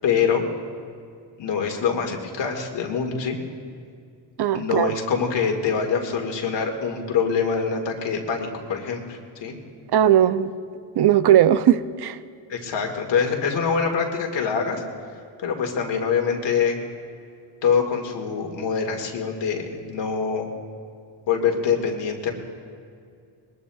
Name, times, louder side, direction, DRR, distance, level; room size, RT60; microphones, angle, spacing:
voice 1, 0.0-0.4 1.4-3.4 4.5-9.6 12.5-14.8 15.4-16.8 17.6-20.5 21.3-22.3, left 6 dB, 80° left, 2 dB, 2.1 m, -24 dB
voice 2, 4.4-5.0 9.9-10.5 11.0-12.2, right 11 dB, 65° right, 13 dB, 0.6 m, -18 dB
21.5 x 21.0 x 2.4 m, 2.3 s
cardioid pair, 125°, 43 cm